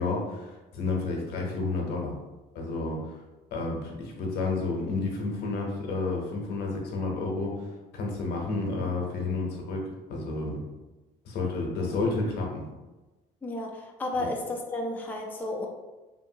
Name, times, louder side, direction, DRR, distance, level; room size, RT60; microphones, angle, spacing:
voice 1, 0.0-2.2 2.5-3.0 3.5-7.7 7.9-9.8 10.1-10.6 11.3-12.6 14.2-14.3, left 3 dB, 75° left, 0 dB, 0.7 m, -30 dB
voice 2, 13.4-15.7, left 2 dB, 10° left, 0 dB, 0.4 m, -32 dB
2.7 x 2.5 x 2.7 m, 1.1 s
cardioid pair, 110°, 17 cm